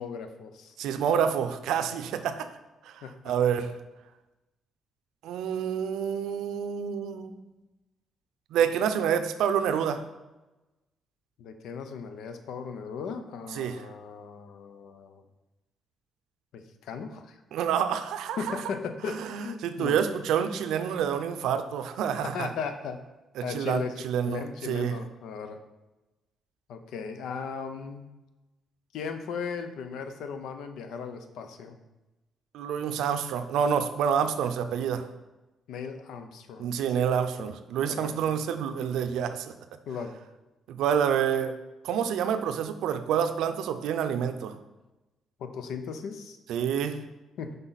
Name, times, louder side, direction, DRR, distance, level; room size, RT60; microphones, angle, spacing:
voice 1, 0.0-0.8 3.0-3.3 11.4-15.2 16.5-17.4 18.4-20.1 22.2-23.0 23.4-25.6 26.7-28.1 28.9-31.8 35.7-36.7 37.9-38.1 39.9-40.2 45.4-46.4 47.4-47.6, left 6 dB, 80° left, 8 dB, 0.6 m, -37 dB
voice 2, 0.8-2.5 2.9-3.7 5.2-7.3 8.5-10.0 13.5-13.8 17.5-18.6 19.1-22.5 23.4-25.0 32.5-35.1 36.6-39.5 40.7-41.6 41.8-44.6 46.5-47.0, right 8 dB, 85° right, 9 dB, 0.5 m, -28 dB
5.9 x 5.3 x 4.0 m, 1.1 s
cardioid pair, 90°, 0 cm